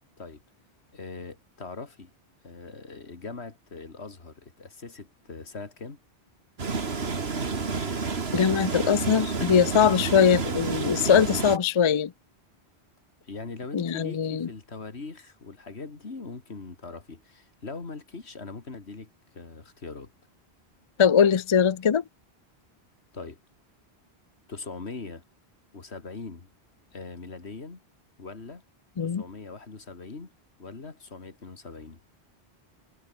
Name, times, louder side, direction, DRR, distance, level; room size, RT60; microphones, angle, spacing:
voice 1, 0.9-2.1 2.4-6.0 13.2-20.1 23.1-23.4 24.5-25.2 25.7-26.5 26.9-27.8 28.2-28.6 29.0-30.3 30.6-32.0, left 3 dB, 80° left, 2.7 m, -41 dB
sound 1, 6.6-11.6, right 4 dB, 70° right, 2.2 m, -30 dB
voice 2, 8.3-12.1 13.7-14.5 21.0-22.0 29.0-29.2, left 7 dB, 40° left, 0.5 m, -21 dB
omnidirectional pair, 1.1 m